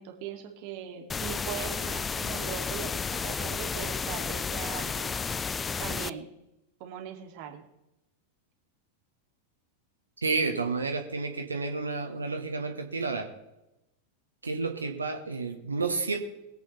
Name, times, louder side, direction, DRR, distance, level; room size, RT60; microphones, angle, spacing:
voice 1, 0.0-5.4 5.8-6.3 6.8-7.6, right 9 dB, 45° right, 4 dB, 2.3 m, -40 dB
sound 1, 1.1-6.1, left 5 dB, 15° left, 0.4 m, -32 dB
voice 2, 10.2-13.3 14.4-16.2, right 4 dB, 75° right, 4 dB, 1.4 m, -30 dB
21.5 x 8.2 x 4.3 m, 0.91 s
figure-of-eight pair, 90°, 0 cm